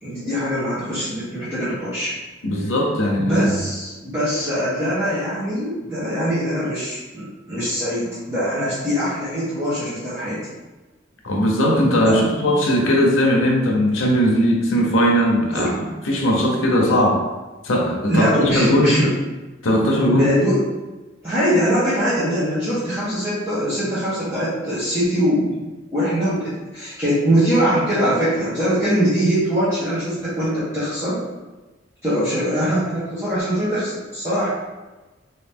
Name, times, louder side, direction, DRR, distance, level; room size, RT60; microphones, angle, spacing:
voice 1, 0.0-2.1 3.2-10.4 12.0-12.2 15.5-15.7 16.8-16.9 18.1-19.1 20.1-20.6 21.2-25.6 25.9-31.2 32.0-34.5, equal, 15° right, -14 dB, 1.0 m, -22 dB
voice 2, 2.4-3.6 11.2-15.7 16.0-17.2 17.6-18.9 19.6-20.3, equal, 80° left, 0 dB, 0.7 m, -18 dB
2.9 x 2.8 x 3.5 m, 1.2 s
head